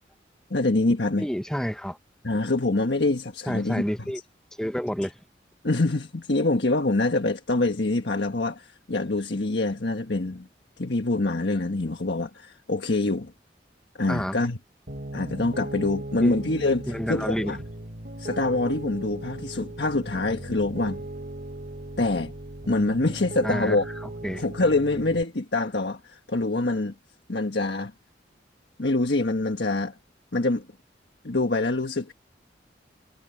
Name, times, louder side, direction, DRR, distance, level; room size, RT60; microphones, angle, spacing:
voice 1, 0.5-1.3 2.2-4.1 5.6-10.5 10.8-13.3 14.0-14.6 15.1-17.6 18.2-21.0 22.0-22.3 22.7-23.9 24.4-26.9 27.3-27.9 28.8-29.9 30.3-30.6 31.2-32.1, left 2 dB, 70° left, 1.4 m, -25 dB
voice 2, 1.2-2.0 3.5-4.2 4.6-5.1 14.1-14.4 16.2-16.4 16.9-17.5 23.4-23.8 24.0-24.4, equal, 5° left, 0.6 m, -29 dB
Piano, 14.9-25.2, right 1 dB, 55° right, 2.9 m, -37 dB
head